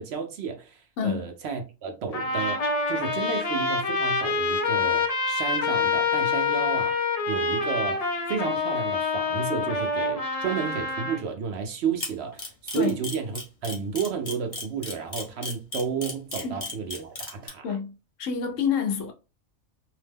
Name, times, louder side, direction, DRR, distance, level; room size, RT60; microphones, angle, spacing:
voice 1, 0.0-17.6, right 6 dB, 65° right, 0.7 m, -32 dB
voice 2, 1.0-1.3 12.7-13.0 16.4-16.7 17.6-17.9 18.2-19.1, left 6 dB, 80° left, 1.0 m, -28 dB
Trumpet, 2.1-11.2, left 4 dB, 45° left, 0.5 m, -26 dB
Camera, 12.0-17.5, left 2 dB, 30° left, 0.9 m, -34 dB
2.8 x 2.1 x 3.3 m
omnidirectional pair, 1.3 m